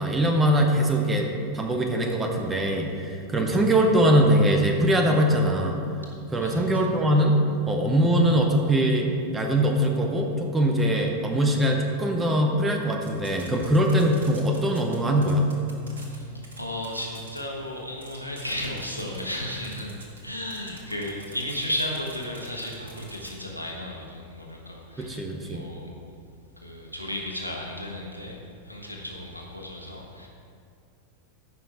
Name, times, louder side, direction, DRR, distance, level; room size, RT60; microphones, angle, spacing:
voice 1, 0.0-5.8 6.3-7.4 7.7-9.1 9.3-15.5 25.0-25.6, right 1 dB, 15° right, 2 dB, 1.1 m, -22 dB
voice 2, 6.4-6.9 16.0-25.9 26.6-28.4 28.6-30.3, left 1 dB, 90° right, -1 dB, 1.4 m, -34 dB
sound 1, 10.8-16.8, right 3 dB, 40° right, 1.3 m, -45 dB
sound 2, 13.0-14.9 15.2-16.2 16.4-16.6 16.8-17.4 17.7-17.8 18.0-19.2 19.6-20.2 20.5-23.3, right 3 dB, 65° right, 1.5 m, -46 dB
14.5 x 5.7 x 4.3 m, 2.3 s
figure-of-eight pair, 90°, 0 cm